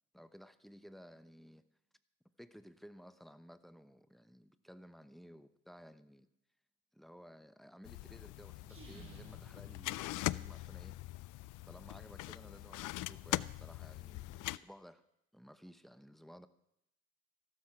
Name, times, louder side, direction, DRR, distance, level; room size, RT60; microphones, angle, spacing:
voice 1, 0.1-1.6 2.4-6.3 6.9-11.0 11.7-15.0 15.3-16.5, equal, ahead, 12 dB, 0.9 m, -56 dB
sound 1, 7.8-14.6, left 18 dB, 85° left, 0.5 m, -41 dB
sound 2, 8.6-10.7, right 3 dB, 45° right, 5.4 m, -57 dB
14.5 x 12.5 x 5.9 m, 0.82 s
cardioid pair, 90°, 30 cm